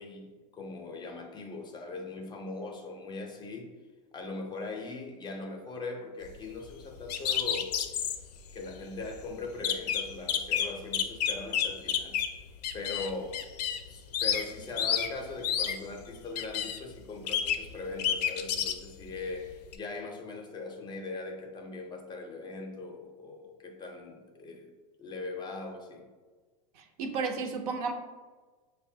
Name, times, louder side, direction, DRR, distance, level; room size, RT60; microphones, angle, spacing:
voice 1, 0.0-3.7 4.1-7.7 8.5-12.2 12.7-13.4 13.9-24.7 25.0-26.0, left 3 dB, 20° left, 3 dB, 0.5 m, -40 dB
sound 1, 7.1-8.2 8.8-8.9 9.1-9.2 9.6-12.4 12.6-13.9 14.1-14.4 14.8-15.1 15.4-15.8 16.4-16.8 17.3-17.7 18.0-18.7 19.7-19.8, left 9 dB, 80° left, 0.4 m, -29 dB
voice 2, 26.8-27.9, right 4 dB, 65° right, 5 dB, 0.5 m, -33 dB
5.1 x 2.1 x 2.7 m, 1.4 s
hypercardioid pair, 120°, 20 cm